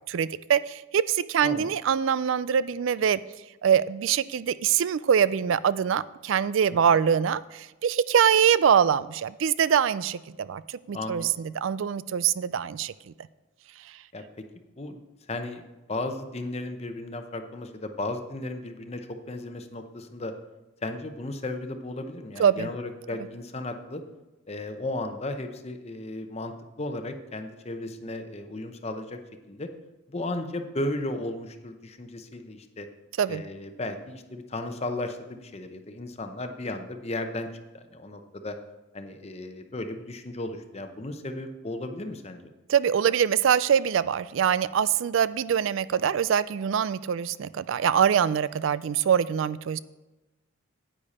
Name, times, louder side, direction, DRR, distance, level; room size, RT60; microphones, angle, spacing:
voice 1, 0.1-3.2 3.6-12.9 22.4-22.7 23.1-23.3 33.2-33.4 42.7-49.8, right 8 dB, 65° right, 17 dB, 0.3 m, -24 dB
voice 2, 10.9-11.3 14.1-14.2 14.8-15.0 15.3-15.6 15.9-20.3 20.8-24.0 24.5-29.2 29.5-29.7 30.1-32.9 33.3-37.5 37.7-38.6 38.9-42.5, left 2 dB, 30° left, 7 dB, 0.8 m, -35 dB
9.9 x 8.8 x 4.2 m, 1.1 s
head